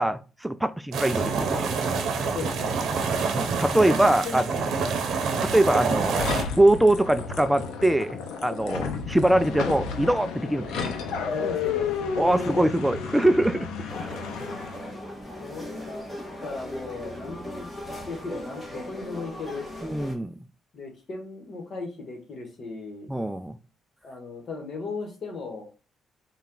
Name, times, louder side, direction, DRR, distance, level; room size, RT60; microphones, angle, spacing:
voice 1, 0.0-1.7 3.3-4.5 5.4-10.9 12.2-13.7 14.0-14.2 19.8-20.3 23.1-23.6, right 1 dB, 5° right, 0.3 m, -23 dB
sound 1, 0.9-6.4, right 5 dB, 70° right, 0.7 m, -27 dB
voice 2, 2.3-2.8 4.0-4.7 8.6-8.8 11.2-11.9 12.2-12.7 15.4-16.1 16.4-17.7 18.0-19.7 20.7-23.1 24.0-25.7, left 3 dB, 50° left, 1.3 m, -37 dB
sound 2, 6.2-14.9, left 6 dB, 90° left, 0.6 m, -32 dB
sound 3, 13.9-20.1, left 1 dB, 15° left, 1.4 m, -38 dB
4.1 x 2.3 x 3.7 m
cardioid pair, 90°, 0 cm